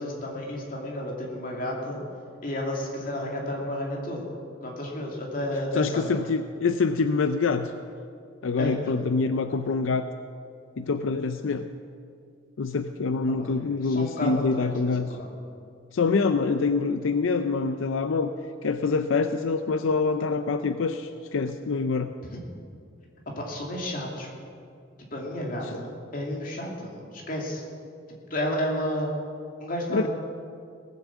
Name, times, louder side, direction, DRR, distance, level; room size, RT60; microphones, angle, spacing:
voice 1, 0.0-2.0 2.4-4.3 4.6-6.1 8.6-8.9 13.4-13.5 13.8-15.3 22.2-22.3 23.3-24.3 25.1-27.6 28.3-29.1 29.6-30.1, left 1 dB, 45° left, -1 dB, 2.5 m, -32 dB
voice 2, 5.7-7.7 8.4-10.1 10.8-11.6 12.6-15.1 15.9-18.3 18.6-22.1 29.9-30.1, left 4 dB, 85° left, 9 dB, 0.5 m, -25 dB
18.5 x 7.1 x 7.3 m, 2.3 s
head